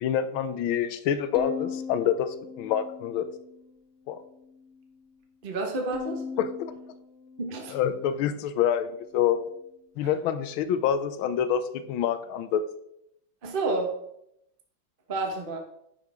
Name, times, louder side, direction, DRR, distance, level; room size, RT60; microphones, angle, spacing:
voice 1, 0.0-3.3 4.1-4.2 6.4-6.7 7.7-9.4 10.0-12.6, left 9 dB, 90° left, 12 dB, 1.5 m, -27 dB
Bowed string instrument, 1.3-3.7 4.2-4.9 5.9-8.4, left 6 dB, 60° left, 0.7 m, -40 dB
voice 2, 5.4-6.2 7.4-7.8 13.4-14.0 15.1-15.6, right 2 dB, 35° right, 2 dB, 1.0 m, -29 dB
9.8 x 5.0 x 3.5 m, 0.76 s
omnidirectional pair, 2.2 m